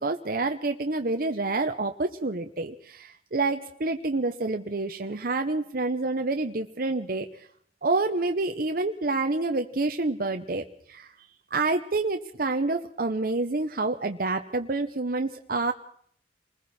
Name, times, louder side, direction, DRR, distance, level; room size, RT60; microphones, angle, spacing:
voice 1, 0.0-7.3 7.8-11.1 11.5-15.7, right 3 dB, 55° right, 6 dB, 0.9 m, -28 dB
29.5 x 20.5 x 4.4 m, 0.63 s
head